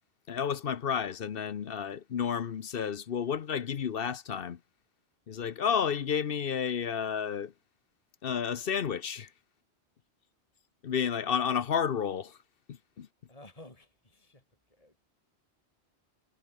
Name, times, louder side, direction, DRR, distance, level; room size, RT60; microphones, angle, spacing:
voice 1, 0.3-4.6 5.3-7.5 8.2-9.3 10.8-12.4 12.7-13.1, left 7 dB, 55° left, 0.9 m, -31 dB
voice 2, 13.3-14.4 14.7-15.0, left 1 dB, 30° left, 3.9 m, -53 dB
omnidirectional pair, 1.2 m